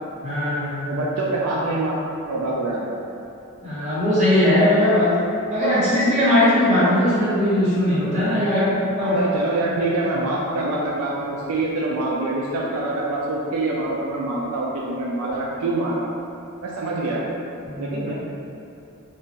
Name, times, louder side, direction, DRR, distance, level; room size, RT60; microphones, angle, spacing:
voice 1, 0.2-1.0 3.6-5.2 5.5-9.2 17.6-18.1, left 1 dB, 35° right, -12 dB, 1.2 m, -19 dB
voice 2, 0.8-2.0 2.3-2.9 9.0-16.0 16.6-17.3 17.8-18.1, right 2 dB, 80° right, -4 dB, 0.4 m, -25 dB
2.6 x 2.4 x 3.6 m, 2.7 s
head